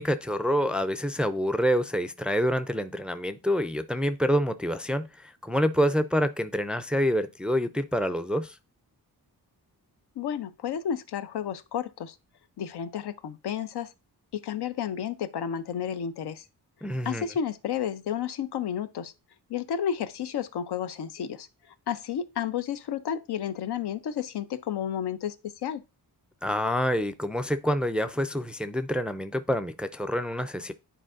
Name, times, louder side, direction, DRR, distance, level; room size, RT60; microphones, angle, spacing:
voice 1, 0.0-8.6 16.8-17.3 26.4-30.7, equal, 5° right, 0.3 m, -27 dB
voice 2, 10.2-12.1 12.6-13.9 14.3-16.4 17.0-19.1 19.5-21.5 21.9-25.8, left 8 dB, 85° left, 0.6 m, -31 dB
10.0 x 4.5 x 2.5 m
wide cardioid pair, 110°, 39 cm